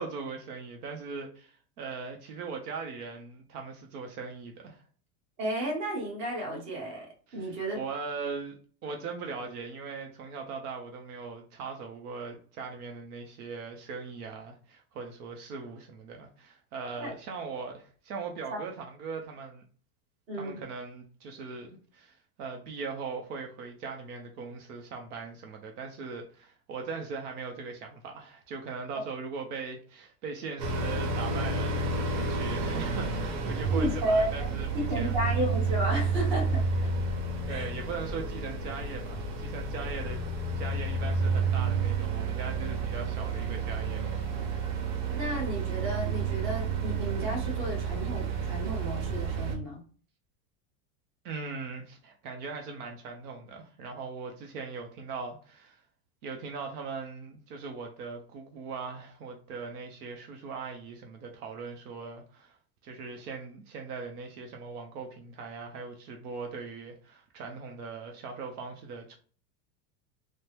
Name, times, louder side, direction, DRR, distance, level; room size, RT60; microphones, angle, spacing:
voice 1, 0.0-4.8 7.3-19.6 20.3-35.1 37.5-40.2 40.6-44.3 51.2-55.8 56.2-62.6 62.8-69.2, right 4 dB, 65° right, 0.7 m, -40 dB
voice 2, 5.4-7.1 7.3-7.8 17.0-17.1 18.5-18.6 20.3-20.6 33.7-34.6 34.9-36.9 37.5-37.7 45.1-49.8, right 1 dB, 25° right, 0.9 m, -32 dB
sound 1, 30.6-49.6, right 4 dB, 85° right, 1.0 m, -30 dB
3.3 x 2.1 x 2.8 m
supercardioid pair, 170°, 49 cm